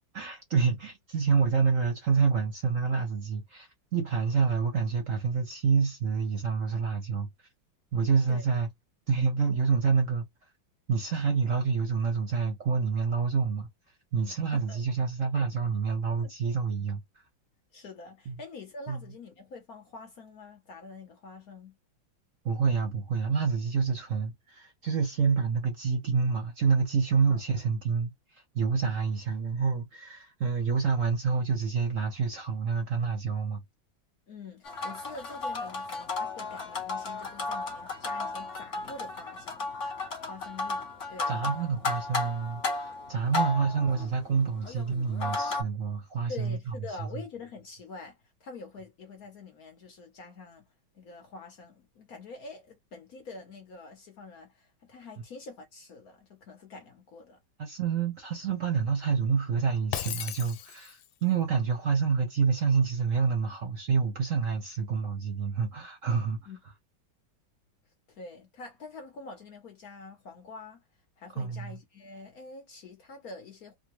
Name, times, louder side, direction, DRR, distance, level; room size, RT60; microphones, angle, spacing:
voice 1, 0.1-7.3 7.9-8.7 9.1-10.2 10.9-13.7 14.1-17.0 18.3-18.4 18.9-19.0 22.4-33.6 41.3-46.7 47.0-47.1 57.6-66.4 71.4-71.7, right 5 dB, 55° right, 1.0 m, -28 dB
voice 2, 14.2-14.8 15.3-15.4 16.1-16.3 17.7-21.8 27.3-27.4 34.3-39.7 40.2-41.9 43.2-43.3 46.3-50.7 50.9-57.4 66.5-66.6 68.1-70.8 71.2-73.7, left 3 dB, 60° left, 1.1 m, -46 dB
sound 1, 34.6-45.6, left 3 dB, 40° left, 1.5 m, -34 dB
Shatter, 59.9-61.1, left 10 dB, 80° left, 1.4 m, -36 dB
3.6 x 2.2 x 3.0 m
omnidirectional pair, 2.2 m